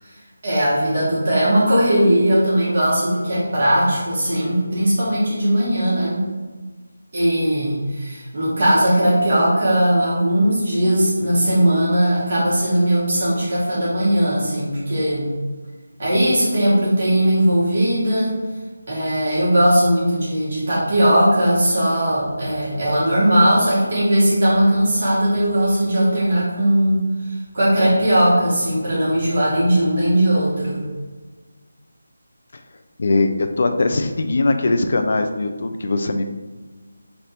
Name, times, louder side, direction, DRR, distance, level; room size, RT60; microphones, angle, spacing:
voice 1, 0.4-6.2 7.1-15.3 16.0-18.4 18.9-30.8, right 1 dB, 45° right, -7 dB, 1.4 m, -18 dB
voice 2, 33.0-36.3, left 2 dB, 50° left, 6 dB, 0.4 m, -20 dB
3.3 x 2.5 x 4.3 m, 1.3 s
figure-of-eight pair, 170°, 0 cm